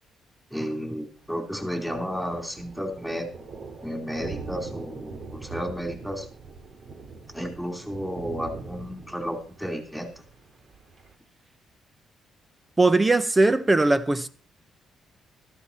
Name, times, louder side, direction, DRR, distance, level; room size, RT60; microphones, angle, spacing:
voice 1, 0.5-3.3 3.8-6.3 7.3-10.2, equal, 5° right, 3.8 m, -32 dB
Thunder, 1.2-11.1, right 4 dB, 55° right, 2.6 m, -42 dB
voice 2, 12.8-14.3, right 2 dB, 20° right, 1.1 m, -20 dB
13.5 x 12.0 x 4.4 m
cardioid pair, 90°, 0 cm